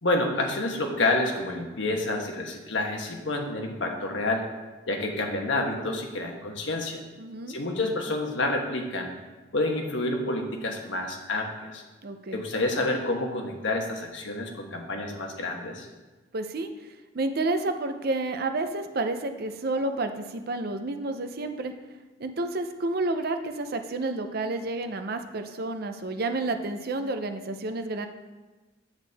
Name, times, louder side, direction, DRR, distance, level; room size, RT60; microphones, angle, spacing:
voice 1, 0.0-4.5 4.9-7.0 7.5-9.1 9.5-11.8 12.3-15.9, left 2 dB, 85° left, 2 dB, 1.2 m, -28 dB
voice 2, 7.2-7.6 12.0-12.4 16.3-16.7 17.1-21.7 22.2-28.1, right 2 dB, 55° right, 7 dB, 0.6 m, -30 dB
8.0 x 7.9 x 3.4 m, 1.2 s
head